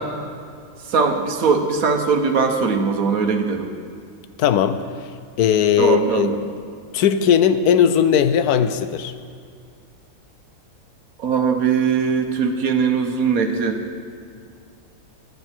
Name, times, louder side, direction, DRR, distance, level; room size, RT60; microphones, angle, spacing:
voice 1, 0.9-3.7 5.8-6.4 11.2-13.8, right 5 dB, 65° right, 5 dB, 1.5 m, -20 dB
voice 2, 4.4-4.8 5.4-6.3 6.9-9.1, left 8 dB, 80° left, 11 dB, 1.2 m, -17 dB
16.5 x 10.5 x 4.5 m, 2.2 s
omnidirectional pair, 1.6 m